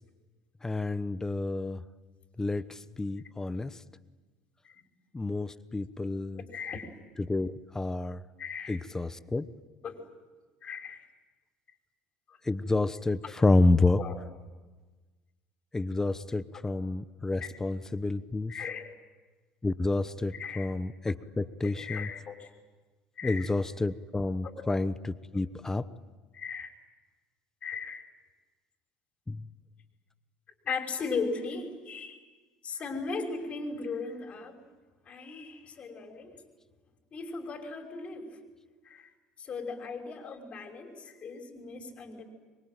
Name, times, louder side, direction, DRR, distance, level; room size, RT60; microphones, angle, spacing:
voice 1, 0.6-1.8 2.4-3.7 5.1-6.4 7.2-8.2 8.7-9.5 12.4-14.0 15.7-18.5 19.6-22.1 23.2-25.9 29.3-29.4, left 2 dB, 15° left, 14 dB, 1.0 m, -29 dB
voice 2, 6.3-6.9 8.4-8.8 9.8-10.0 10.6-11.1 12.3-12.4 13.2-13.3 14.0-14.2 17.4-17.5 18.5-18.9 20.3-20.7 21.6-22.5 23.2-23.5 24.4-24.6 26.3-26.7 27.6-28.1 30.6-32.2 32.6-34.6 35.1-36.4 37.1-38.4 38.8-39.1 39.4-42.2, left 4 dB, 40° left, 3 dB, 5.6 m, -37 dB
26.0 x 23.5 x 9.3 m, 1.3 s
hypercardioid pair, 70°, 3 cm